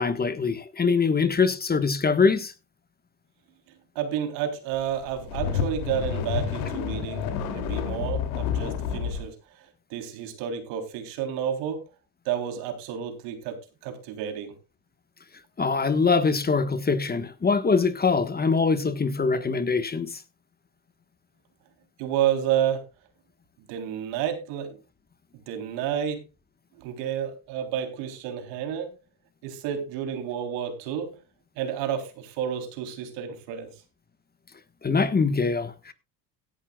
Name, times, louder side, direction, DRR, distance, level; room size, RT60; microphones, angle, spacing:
voice 1, 0.0-2.5 15.6-20.2 34.8-35.9, left 4 dB, 20° left, 1.4 m, -23 dB
voice 2, 4.0-9.3 9.9-11.8 12.3-14.5 22.0-22.8 23.7-24.8 25.3-26.2 26.8-28.9 29.4-31.2 31.6-33.7, right 9 dB, 80° right, 3.8 m, -30 dB
sound 1, 5.0-9.3, left 7 dB, 90° left, 3.0 m, -29 dB
17.0 x 11.5 x 2.4 m
supercardioid pair, 100°, 43 cm